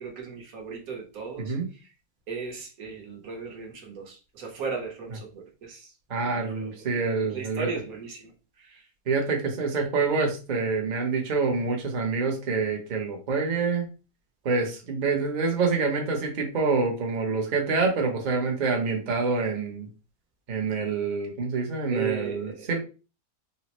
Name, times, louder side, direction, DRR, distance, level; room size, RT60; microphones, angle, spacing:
voice 1, 0.0-1.9 2.3-5.9 6.3-7.0 7.3-8.3 8.6-8.8 21.9-22.8, right 5 dB, 70° right, 1.3 m, -36 dB
voice 2, 1.4-1.7 6.1-7.7 9.1-13.9 14.4-19.9 20.5-22.8, right 4 dB, 45° right, 0.6 m, -26 dB
4.0 x 2.0 x 2.9 m
omnidirectional pair, 1.6 m